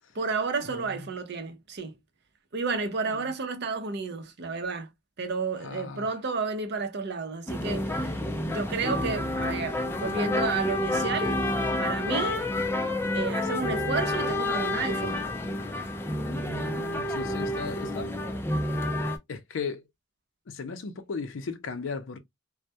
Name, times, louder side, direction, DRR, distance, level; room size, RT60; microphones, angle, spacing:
voice 1, 0.1-1.9 2.5-4.9 5.2-11.4 11.8-12.4 13.1-15.3, right 4 dB, 60° right, 0.6 m, -31 dB
voice 2, 0.7-1.1 3.1-3.3 5.6-6.1 16.3-18.2 19.3-19.8 20.5-22.2, left 5 dB, 70° left, 0.5 m, -36 dB
sound 1, 7.5-19.2, left 1 dB, 10° left, 0.4 m, -29 dB
2.2 x 2.1 x 2.6 m
head